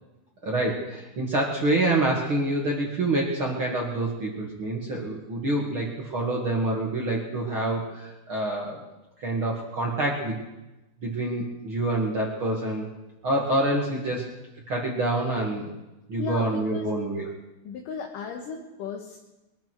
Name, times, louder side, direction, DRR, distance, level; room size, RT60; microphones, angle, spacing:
voice 1, 0.4-8.8 9.2-10.4 11.0-12.9 13.2-14.2 14.7-15.7 16.1-17.2, right 2 dB, 40° right, -2 dB, 2.4 m, -27 dB
voice 2, 16.2-16.9 17.6-19.2, left 5 dB, 65° left, 3 dB, 2.8 m, -35 dB
22.5 x 13.0 x 4.7 m, 1.0 s
omnidirectional pair, 4.3 m